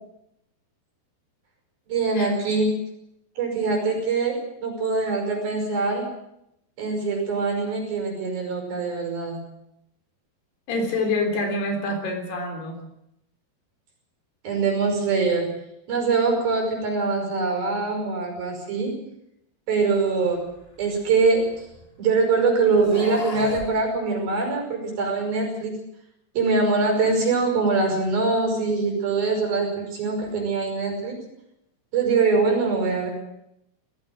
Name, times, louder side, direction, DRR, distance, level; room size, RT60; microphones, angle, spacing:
voice 1, 1.9-2.7 3.4-6.1 6.8-9.4 14.4-15.5 15.9-18.9 19.7-20.4 20.8-21.7 22.0-25.7 26.4-31.2 31.9-33.1, right 4 dB, 60° right, 2 dB, 7.2 m, -23 dB
voice 2, 10.7-12.8, left 2 dB, 75° left, 4 dB, 5.5 m, -26 dB
sound 1, 20.5-22.0 22.7-23.7, left 1 dB, 20° left, 1.6 m, -37 dB
18.5 x 15.0 x 9.3 m, 0.81 s
omnidirectional pair, 4.7 m